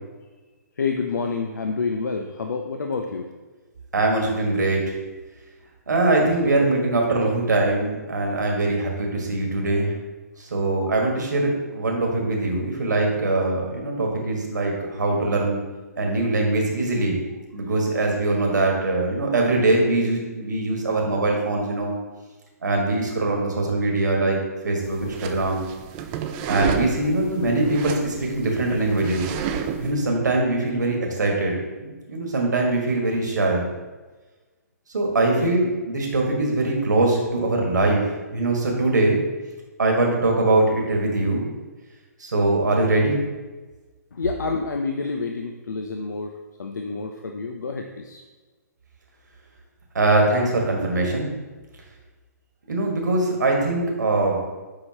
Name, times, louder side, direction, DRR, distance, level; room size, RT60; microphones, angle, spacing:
voice 1, 0.8-3.3 6.2-6.7 8.6-8.8 35.4-35.5 44.1-46.3 46.6-48.2, left 4 dB, 85° left, 4 dB, 0.5 m, -28 dB
voice 2, 3.9-5.0 5.9-10.0 10.4-15.6 16.0-17.2 17.5-22.0 22.6-24.4 24.6-25.7 26.5-29.3 29.8-33.7 34.9-39.2 39.8-41.5 42.2-43.2 49.9-51.3 52.7-54.4, right 2 dB, 85° right, 0 dB, 1.5 m, -22 dB
sound 1, 24.8-29.9, right 7 dB, 30° right, 0.4 m, -31 dB
7.1 x 4.9 x 2.9 m, 1.3 s
hypercardioid pair, 135°, 9 cm